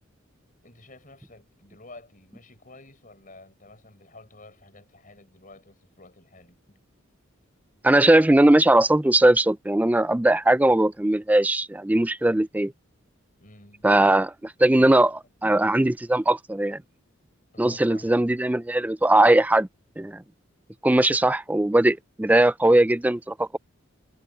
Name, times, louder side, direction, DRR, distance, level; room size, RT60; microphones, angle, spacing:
voice 1, 0.6-6.8 13.4-13.9 17.5-18.2, left 2 dB, 40° left, 6.4 m, -50 dB
voice 2, 7.8-12.7 13.8-16.8 17.6-19.7 20.0-20.2 20.8-23.6, right 1 dB, 5° right, 0.3 m, -20 dB
head